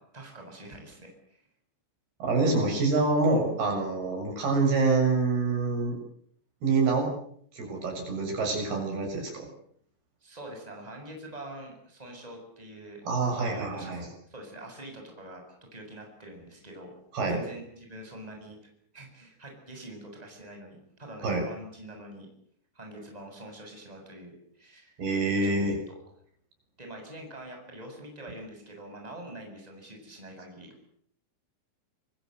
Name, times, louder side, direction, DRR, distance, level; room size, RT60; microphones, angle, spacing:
voice 1, 0.0-1.4 10.2-14.0 14.3-15.4 15.7-16.9 17.3-18.6 18.9-22.3 22.7-24.9 25.4-25.5 25.9-26.0 26.8-30.7, right 1 dB, 10° right, 2 dB, 7.2 m, -45 dB
voice 2, 2.2-6.0 6.6-7.1 7.5-9.5 13.1-14.1 17.1-17.4 21.2-21.4 25.0-25.8, right 3 dB, 60° right, 1 dB, 9.0 m, -26 dB
26.0 x 24.0 x 8.1 m, 0.65 s
omnidirectional pair, 5.1 m